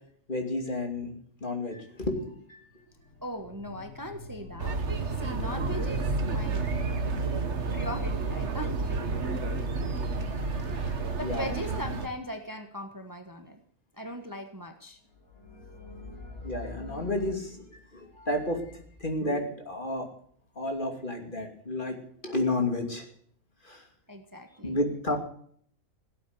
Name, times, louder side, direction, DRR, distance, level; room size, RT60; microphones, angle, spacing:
voice 1, 0.3-1.1 1.4-2.6 10.2-11.5 16.4-20.1 20.6-22.0 22.2-23.0 23.6-23.8 24.6-25.2, left 2 dB, 35° left, 3 dB, 2.9 m, -32 dB
sound 1, 2.7-11.1 15.1-17.3, left 2 dB, 85° left, 4.0 m, -45 dB
voice 2, 3.2-4.8 5.1-6.7 7.7-9.3 11.2-13.6 13.9-15.0 24.1-24.7, equal, 15° right, 6 dB, 1.3 m, -39 dB
sound 2, 4.6-12.1, right 3 dB, 55° right, 1.6 m, -30 dB
17.0 x 8.5 x 9.7 m, 0.62 s
omnidirectional pair, 1.4 m